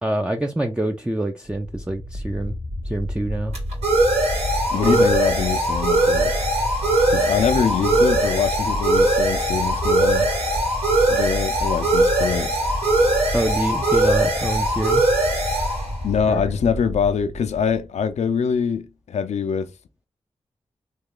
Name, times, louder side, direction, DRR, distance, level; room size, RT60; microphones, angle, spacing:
voice 1, 0.0-2.6 2.8-3.6 4.7-5.0 7.6-8.1 13.3-15.0 16.3-16.4, right 1 dB, 10° right, 0.5 m, -26 dB
sound 1, 2.0-17.3, right 1 dB, 70° right, 1.8 m, -21 dB
voice 2, 4.7-6.3 7.1-10.3 11.1-12.5 16.0-19.7, left 6 dB, 80° left, 0.5 m, -24 dB
3.3 x 2.3 x 3.7 m
cardioid pair, 45°, 11 cm